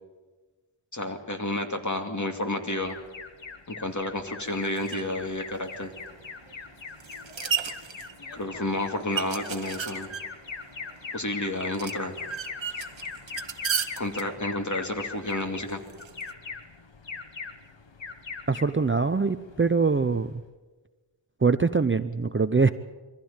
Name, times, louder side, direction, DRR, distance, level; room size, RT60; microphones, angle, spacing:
voice 1, 0.9-3.0 3.7-5.9 8.3-10.1 11.1-12.2 14.0-15.8, left 1 dB, 35° left, 4 dB, 2.5 m, -30 dB
Alarm, 2.8-20.5, left 4 dB, 65° left, 1.6 m, -41 dB
sound 1, 4.4-16.3, right 6 dB, 65° right, 1.2 m, -36 dB
voice 2, 18.5-20.4 21.4-22.7, right 4 dB, 25° right, 11 dB, 0.6 m, -23 dB
23.0 x 15.0 x 8.9 m, 1.3 s
wide cardioid pair, 75°, 48 cm